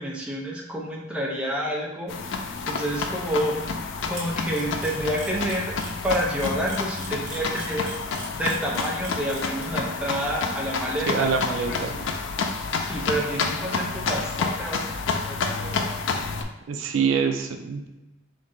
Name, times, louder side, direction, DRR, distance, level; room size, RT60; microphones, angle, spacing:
voice 1, 0.0-2.3 2.7-3.7 4.0-7.9 8.3-11.3 11.7-12.0 12.8-15.0 15.2-15.9, right 1 dB, 5° right, -3 dB, 0.6 m, -29 dB
sound 1, 2.1-16.4, left 4 dB, 65° left, 0.4 m, -29 dB
Camera, 4.1-9.6, right 3 dB, 40° right, 1.0 m, -39 dB
voice 2, 11.1-12.0 16.7-17.9, right 6 dB, 70° right, 6 dB, 0.4 m, -25 dB
3.8 x 2.7 x 3.7 m, 1.0 s
head